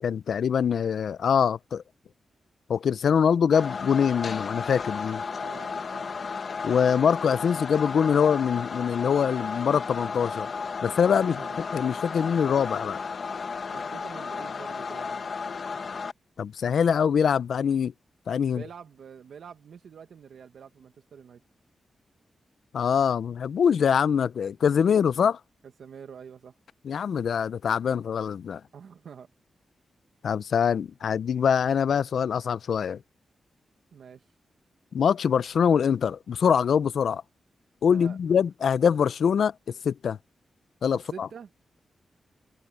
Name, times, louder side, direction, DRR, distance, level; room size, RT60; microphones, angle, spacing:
voice 1, 0.0-1.8 2.7-5.2 6.6-10.5 10.8-11.4 11.7-13.0 16.4-17.9 18.3-18.6 22.7-25.4 26.8-28.6 30.2-33.0 34.9-37.2 37.8-40.2 40.8-41.3, left 7 dB, 70° left, 0.5 m, -24 dB
sound 1, 3.5-16.1, left 5 dB, 45° left, 1.0 m, -34 dB
voice 2, 5.4-6.1 11.1-11.6 13.7-15.3 18.4-21.4 25.8-26.6 28.7-29.3 33.9-34.3 37.9-38.2 40.9-41.5, right 7 dB, 70° right, 1.0 m, -46 dB
wide cardioid pair, 155°, 0 cm